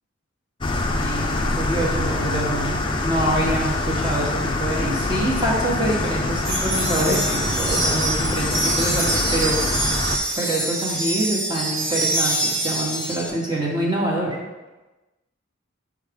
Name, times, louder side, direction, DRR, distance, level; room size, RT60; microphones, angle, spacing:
sound 1, 0.6-10.2, left 2 dB, 25° left, 0.5 m, -25 dB
voice 1, 1.0-10.0 10.3-14.4, right 1 dB, 20° right, -4 dB, 1.4 m, -26 dB
sound 2, 6.4-13.3, right 1 dB, 65° right, 1.3 m, -25 dB
6.3 x 4.9 x 3.6 m, 1.1 s
head